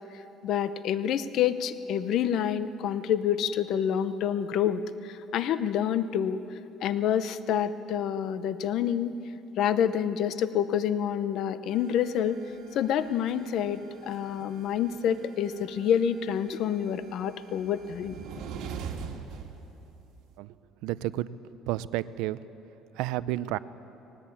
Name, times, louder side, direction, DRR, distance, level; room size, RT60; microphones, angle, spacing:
voice 1, 0.4-6.4 6.8-9.2 9.6-12.4 12.7-18.2, left 9 dB, 50° left, 13 dB, 0.7 m, -28 dB
sound 1, 11.7-20.3, right 6 dB, 65° right, 1.7 m, -44 dB
voice 2, 20.8-21.3 21.7-22.4 23.0-23.6, right 15 dB, 80° right, 16 dB, 0.5 m, -30 dB
19.5 x 18.0 x 8.5 m, 3.0 s
cardioid pair, 175°, 0 cm